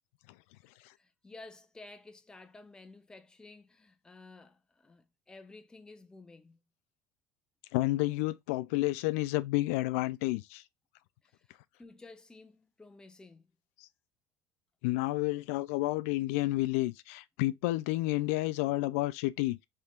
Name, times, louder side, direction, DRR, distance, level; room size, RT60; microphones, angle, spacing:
voice 1, 1.0-6.6 11.2-11.5 11.8-13.5, left 3 dB, 10° left, 0.6 m, -53 dB
voice 2, 7.7-10.6 14.8-19.6, left 19 dB, 85° left, 0.3 m, -30 dB
4.3 x 3.5 x 2.4 m
cardioid pair, 135°, 7 cm